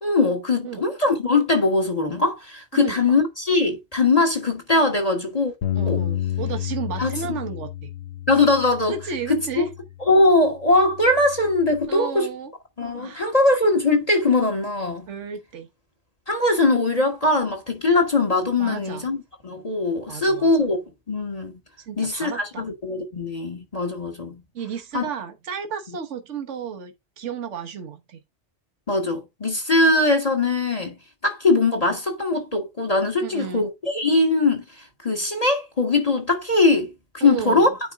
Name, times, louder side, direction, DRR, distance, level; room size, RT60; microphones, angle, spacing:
voice 1, 0.0-5.5 5.9-6.0 7.0-7.4 8.3-8.9 9.3-9.6 10.1-12.3 12.8-15.1 16.3-20.8 21.1-21.5 22.0-24.4 24.9-25.1 28.9-31.0 31.2-34.6 35.0-37.7, left 2 dB, 30° left, 1.4 m, -21 dB
Bass guitar, 5.6-10.1 10.7-11.9, left 11 dB, 60° left, 1.2 m, -31 dB
voice 2, 5.7-7.9 8.9-9.7 11.9-12.5 13.0-13.3 15.1-15.7 18.6-19.1 20.1-20.5 21.9-22.7 24.5-28.2 33.2-33.7 37.2-37.7, right 6 dB, 80° right, 1.4 m, -33 dB
9.6 x 4.2 x 3.5 m
omnidirectional pair, 1.2 m